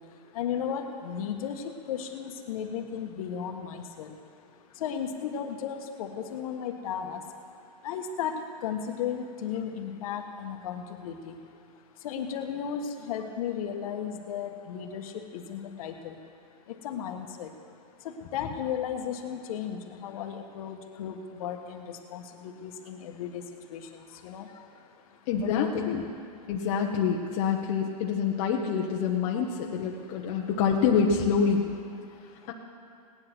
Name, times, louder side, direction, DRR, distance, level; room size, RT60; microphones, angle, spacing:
voice 1, 0.3-4.1 4.8-7.2 7.8-8.3 8.6-11.4 12.0-16.2 16.8-17.5 18.0-23.4 23.7-23.8 24.2-24.5 25.4-26.0, left 8 dB, 60° left, 5 dB, 1.5 m, -34 dB
voice 2, 25.3-26.1 26.5-31.6 32.5-32.6, left 6 dB, 45° left, -1 dB, 1.2 m, -26 dB
17.5 x 10.5 x 6.1 m, 2.5 s
supercardioid pair, 150°, 21 cm